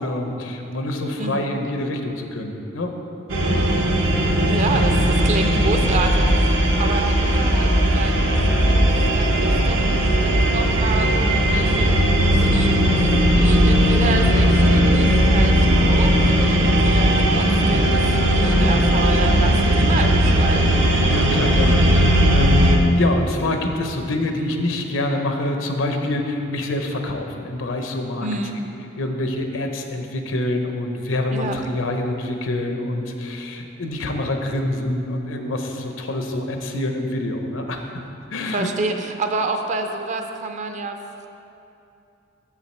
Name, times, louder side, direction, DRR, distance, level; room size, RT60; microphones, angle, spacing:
voice 1, 0.0-2.9 3.4-3.6 4.0-4.4 4.7-4.8 17.0-17.2 21.1-28.6 29.0-38.0 38.3-38.7, left 1 dB, 80° left, 4 dB, 0.7 m, -26 dB
voice 2, 1.2-1.5 4.4-8.8 9.1-9.3 9.7-20.7 28.2-28.6 31.3-31.6 38.5-41.0, right 3 dB, 40° right, 5 dB, 0.5 m, -29 dB
sound 1, 3.3-22.8, equal, 70° right, 0.8 m, -17 dB
7.3 x 6.6 x 4.3 m, 2.7 s
head